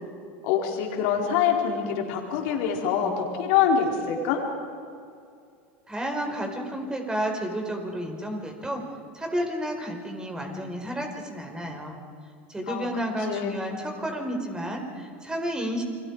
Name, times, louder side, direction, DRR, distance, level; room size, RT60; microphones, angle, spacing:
voice 1, 0.4-4.4 12.7-12.9 13.3-13.6, left 7 dB, 65° left, 1 dB, 4.4 m, -25 dB
voice 2, 5.9-8.8 9.1-12.0 12.5-15.8, equal, 10° right, 3 dB, 4.8 m, -31 dB
29.0 x 23.0 x 4.8 m, 2.3 s
hypercardioid pair, 95°, 7 cm